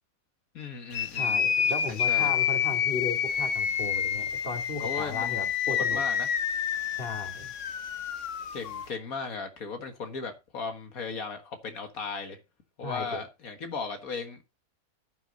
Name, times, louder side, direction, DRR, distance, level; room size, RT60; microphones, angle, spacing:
voice 1, 0.5-1.4 1.9-2.3 4.8-5.3 5.7-6.3 8.5-12.4 12.8-14.4, left 4 dB, 85° left, 2.1 m, -36 dB
sound 1, 0.9-8.9, left 8 dB, 65° left, 1.2 m, -28 dB
voice 2, 1.2-6.0 7.0-7.5 12.8-13.2, left 3 dB, 40° left, 3.0 m, -36 dB
11.5 x 10.5 x 4.1 m
omnidirectional pair, 1.5 m